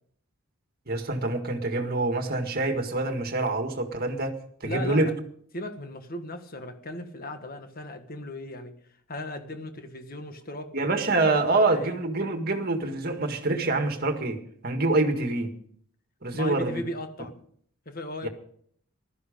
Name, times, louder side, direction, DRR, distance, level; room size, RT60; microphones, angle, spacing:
voice 1, 0.9-4.3 4.6-5.1 10.7-14.4 14.6-15.5 16.2-16.8 18.2-18.3, right 2 dB, 45° right, 1.8 m, -26 dB
voice 2, 4.6-5.1 5.5-8.8 9.1-10.7 11.5-11.9 16.3-17.3 17.8-18.3, left 1 dB, 40° left, 1.6 m, -37 dB
15.5 x 13.0 x 5.3 m
head